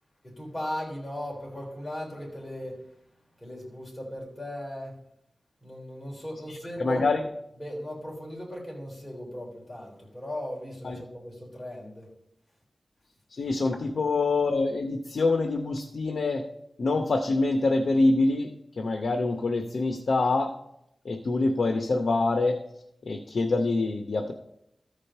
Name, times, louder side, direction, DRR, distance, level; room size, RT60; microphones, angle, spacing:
voice 1, 0.2-2.8 3.4-4.9 5.6-7.0 7.6-12.1, equal, 20° left, -3 dB, 3.6 m, -37 dB
voice 2, 6.5-7.2 10.8-11.0 13.3-16.4 16.8-18.5 18.8-20.5 21.0-22.6 23.0-24.3, left 3 dB, 80° left, 5 dB, 0.7 m, -25 dB
13.5 x 5.1 x 5.5 m, 0.80 s
wide cardioid pair, 95°, 0 cm